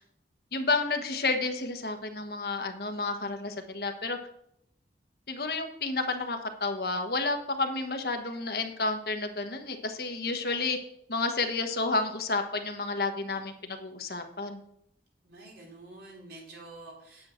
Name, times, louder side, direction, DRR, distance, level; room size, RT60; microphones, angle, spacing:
voice 1, 0.5-4.2 5.3-10.8 11.1-14.6, left 3 dB, 60° left, 5 dB, 1.3 m, -31 dB
voice 2, 15.2-17.3, right 2 dB, 65° right, -3 dB, 4.1 m, -48 dB
9.4 x 8.9 x 4.4 m, 0.74 s
head